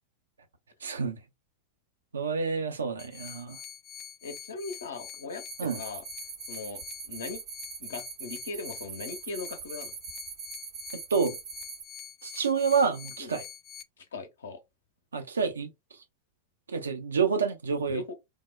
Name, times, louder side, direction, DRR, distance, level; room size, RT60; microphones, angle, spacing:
voice 1, 0.8-1.2 2.1-3.6 5.6-5.8 10.9-11.4 12.2-13.4 15.1-15.7 16.7-18.0, right 5 dB, 70° right, 0.5 m, -28 dB
sound 1, 3.0-13.8, left 8 dB, 30° left, 0.4 m, -45 dB
voice 2, 4.2-6.0 6.5-6.8 7.1-7.4 7.8-9.9 13.2-13.3 14.0-14.6 17.9-18.1, left 3 dB, 65° left, 0.6 m, -39 dB
sound 2, 5.5-11.8, right 6 dB, 55° right, 0.9 m, -43 dB
3.4 x 2.0 x 2.2 m
figure-of-eight pair, 90°, 0 cm